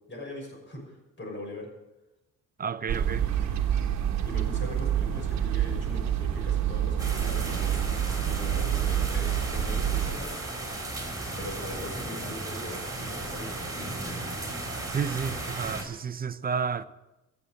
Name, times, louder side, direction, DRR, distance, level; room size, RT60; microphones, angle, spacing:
voice 1, 0.1-1.7 2.8-3.9 4.2-10.3 11.4-14.5, left 1 dB, 40° left, 6.0 m, -41 dB
voice 2, 2.6-3.3 14.9-16.8, right 6 dB, 30° right, 0.7 m, -31 dB
sound 1, 2.9-10.2, right 10 dB, 65° right, 1.2 m, -28 dB
sound 2, 7.0-15.8, right 2 dB, 10° right, 3.9 m, -35 dB
14.5 x 7.3 x 7.8 m
cardioid pair, 90°, 30 cm